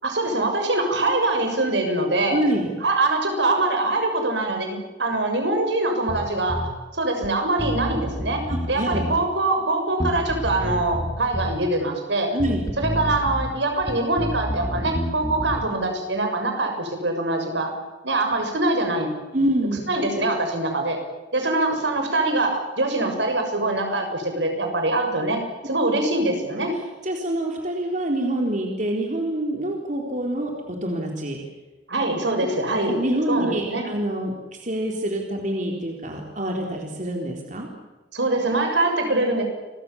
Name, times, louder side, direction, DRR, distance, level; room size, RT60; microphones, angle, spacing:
voice 1, 0.0-2.4 2.8-6.7 7.0-12.3 12.8-17.7 18.0-19.1 19.9-21.0 21.3-26.7 31.9-33.0 33.3-33.8 38.1-39.4, right 2 dB, 75° right, 4 dB, 7.0 m, -23 dB
voice 2, 2.3-2.7 8.5-9.1 12.3-12.7 19.3-19.8 27.0-31.4 32.8-34.3 34.6-37.7, right 1 dB, 45° right, 1 dB, 4.1 m, -26 dB
Bass guitar, 6.1-6.7 7.2-7.3 7.6-9.2 10.0-11.6 12.4-13.5 13.8-15.7, equal, 20° left, 2.5 m, -29 dB
30.0 x 24.0 x 7.3 m, 1.2 s
head